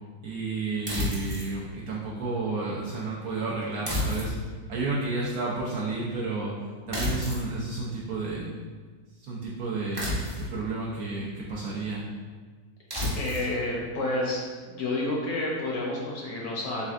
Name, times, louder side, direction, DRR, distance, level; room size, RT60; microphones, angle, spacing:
voice 1, 0.2-4.3 4.7-6.5 6.9-8.5 9.2-10.1 10.5-12.0, right 3 dB, 70° right, -5 dB, 0.9 m, -31 dB
sound 1, 0.9-1.5 3.9-4.6 6.9-7.5 9.9-10.6 12.9-13.5, left 1 dB, 30° right, 0.4 m, -30 dB
voice 2, 13.1-14.4 14.7-16.9, left 2 dB, 70° left, -2 dB, 1.0 m, -30 dB
4.3 x 3.5 x 2.4 m, 1.5 s
omnidirectional pair, 1.9 m